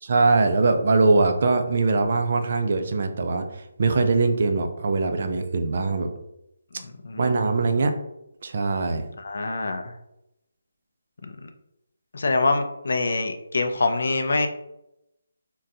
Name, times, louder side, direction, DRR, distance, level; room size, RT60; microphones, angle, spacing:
voice 1, 0.0-6.1 7.2-7.9 8.4-9.0, right 3 dB, 40° right, 6 dB, 0.4 m, -22 dB
voice 2, 6.7-7.3 9.2-9.9 11.4-11.5 12.1-14.5, left 3 dB, 55° left, 6 dB, 0.4 m, -25 dB
3.7 x 2.2 x 2.7 m, 0.84 s
hypercardioid pair, 175°, 0 cm